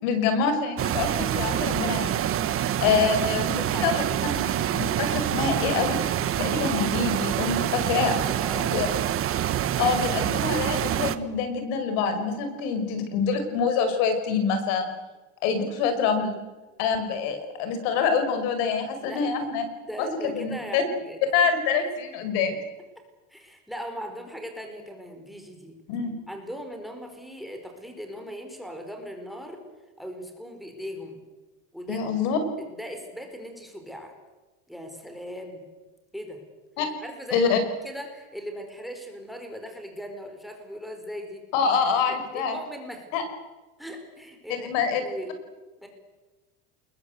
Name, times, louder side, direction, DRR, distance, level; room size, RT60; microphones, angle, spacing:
voice 1, 0.0-2.2 2.4-4.0 4.3-4.5 4.7-6.0 6.4-8.1 8.7-8.9 9.8-14.9 15.4-16.3 16.8-19.6 20.0-20.8 21.3-22.6 25.9-26.1 31.9-32.4 36.8-36.9 37.3-37.6 41.5-42.6 43.1-43.2 44.5-45.0, left 5 dB, 85° left, 8 dB, 5.6 m, -26 dB
sound 1, 0.8-11.2, right 11 dB, 35° right, 1.2 m, -26 dB
voice 2, 3.5-4.0 8.0-9.2 19.0-19.3 19.8-21.2 23.3-25.8 26.3-29.6 30.0-31.2 31.7-32.1 32.6-34.1 34.7-35.6 36.1-36.4 37.0-37.5 37.8-41.4 42.3-43.1 43.8-45.4 45.8-45.9, equal, ahead, 5 dB, 4.5 m, -39 dB
28.5 x 21.5 x 8.1 m, 1.2 s
cardioid pair, 145°, 36 cm